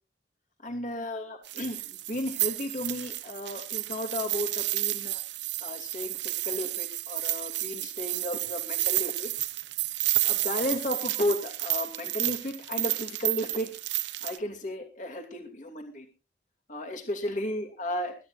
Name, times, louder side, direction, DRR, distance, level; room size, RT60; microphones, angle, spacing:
voice 1, 0.6-5.2 5.6-9.3 10.2-13.7 14.2-16.1 16.7-18.1, left 1 dB, 40° left, 4 dB, 2.8 m, -34 dB
sound 1, 1.4-14.4, right 17 dB, 75° right, 0.9 m, -31 dB
22.5 x 13.0 x 2.6 m, 0.32 s
head